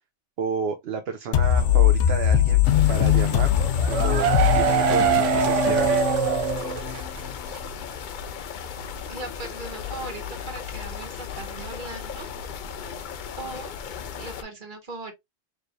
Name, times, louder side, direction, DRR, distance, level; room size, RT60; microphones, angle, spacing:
voice 1, 0.4-2.6 2.9-3.5 3.9-5.9, right 6 dB, 60° right, 0.9 m, -31 dB
sound 1, 1.3-7.0, left 11 dB, 80° left, 0.9 m, -21 dB
sound 2, 2.6-14.4, left 7 dB, 55° left, 0.6 m, -36 dB
sound 3, 3.6-7.2 7.5-7.6 7.9-8.0, right 8 dB, 85° right, 1.0 m, -23 dB
voice 2, 9.1-12.3 13.3-13.7 14.2-15.1, right 3 dB, 40° right, 1.6 m, -38 dB
4.7 x 3.3 x 2.5 m
omnidirectional pair, 1.2 m